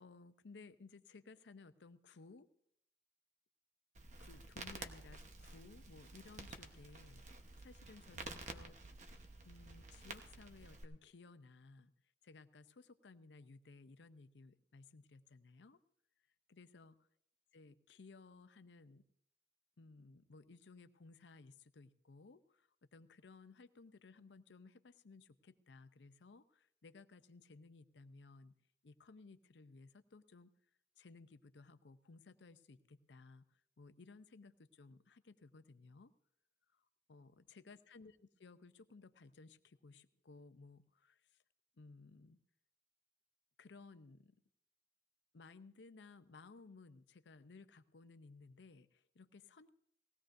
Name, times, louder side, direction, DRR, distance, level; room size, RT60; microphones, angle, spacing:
voice 1, 0.0-2.5 4.2-7.2 7.6-8.7 9.4-11.9 12.2-15.8 16.5-17.0 17.5-19.0 19.8-28.6 28.8-30.5 31.0-36.1 36.7-41.4 41.8-42.4 43.6-44.4 45.3-49.8, left 3 dB, 80° left, 12 dB, 0.6 m, -59 dB
Crackle, 3.9-10.8, right 3 dB, 40° right, 1.0 m, -51 dB
19.5 x 16.5 x 2.6 m, 0.72 s
head